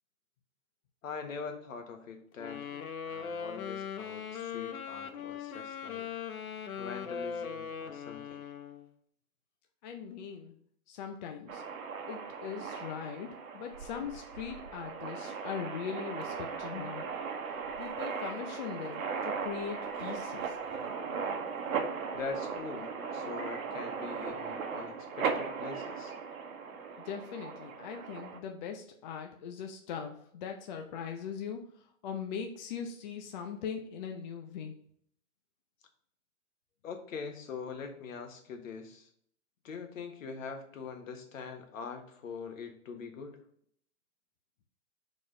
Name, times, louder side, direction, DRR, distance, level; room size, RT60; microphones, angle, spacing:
voice 1, 1.0-6.1 6.8-8.4 22.1-26.1 36.8-39.1 39.6-43.4, left 5 dB, 65° left, 5 dB, 1.5 m, -43 dB
Wind instrument woodwind instrument, 2.4-8.9, left 7 dB, 85° left, 1.0 m, -40 dB
voice 2, 9.8-10.6 10.9-11.6 12.1-17.1 17.8-20.6 27.0-34.8, left 7 dB, 35° left, 4 dB, 0.6 m, -40 dB
sound 1, 11.5-28.4, right 5 dB, 80° right, 1.2 m, -38 dB
4.9 x 4.3 x 4.9 m, 0.64 s
hypercardioid pair, 145°, 41 cm